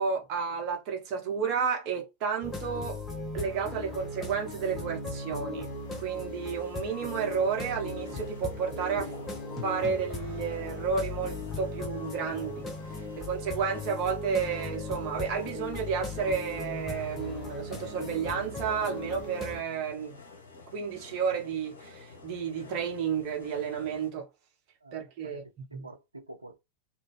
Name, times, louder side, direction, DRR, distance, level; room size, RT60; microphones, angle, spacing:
voice 1, 0.0-3.0 3.3-5.7 6.0-9.1 9.6-12.7 13.2-20.2 20.7-24.3 24.9-25.4 25.7-25.9, right 6 dB, 40° right, 0.9 m, -31 dB
sound 1, 2.4-19.6, left 2 dB, 20° left, 0.8 m, -38 dB
sound 2, 5.6-24.1, left 4 dB, 70° left, 0.8 m, -51 dB
sound 3, 9.0-10.9, left 3 dB, 45° left, 1.3 m, -48 dB
voice 2, 24.8-26.6, right 2 dB, 85° right, 0.5 m, -48 dB
2.6 x 2.2 x 3.1 m
figure-of-eight pair, 90°, 0 cm